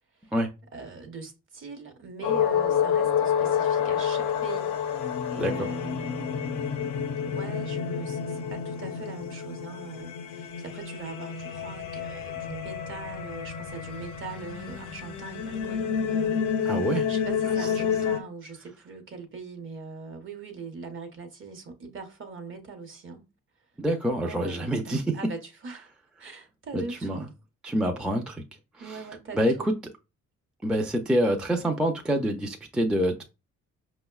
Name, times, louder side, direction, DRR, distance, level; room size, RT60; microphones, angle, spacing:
voice 1, 0.7-4.7 5.3-16.8 17.1-23.3 24.1-25.9 26.2-27.3 28.8-29.7, right 4 dB, 40° right, 0.8 m, -41 dB
sound 1, 2.2-18.2, left 7 dB, 75° left, 0.5 m, -29 dB
voice 2, 5.4-5.7 16.6-17.1 17.6-17.7 23.8-25.3 26.7-27.3 27.6-28.4 28.7-29.0 29.3-29.8 30.6-33.2, equal, 5° right, 0.4 m, -26 dB
5.1 x 2.1 x 2.3 m
cardioid pair, 90°, 30 cm